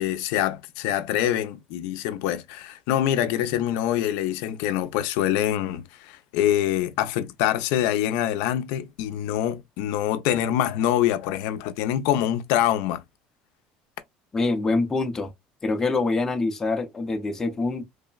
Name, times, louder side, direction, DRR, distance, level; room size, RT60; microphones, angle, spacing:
voice 1, 0.0-13.0, left 11 dB, 80° left, 0.4 m, -25 dB
voice 2, 14.3-15.3 15.6-17.8, left 3 dB, 15° left, 0.5 m, -25 dB
3.2 x 2.0 x 2.2 m
cardioid pair, 150°, 3 cm